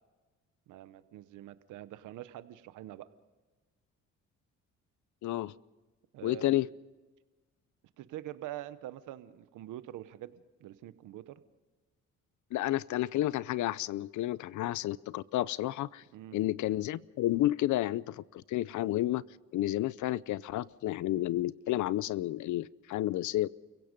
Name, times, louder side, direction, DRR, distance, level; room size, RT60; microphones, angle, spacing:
voice 1, 0.7-3.1 6.1-6.7 8.0-11.4 16.1-16.4, right 13 dB, 85° right, 13 dB, 0.9 m, -45 dB
voice 2, 5.2-5.5 6.2-6.7 12.5-16.0 16.3-19.2 19.5-23.5, left 15 dB, 75° left, 21 dB, 0.6 m, -31 dB
29.5 x 16.5 x 5.2 m, 1.3 s
cardioid pair, 90°, 30 cm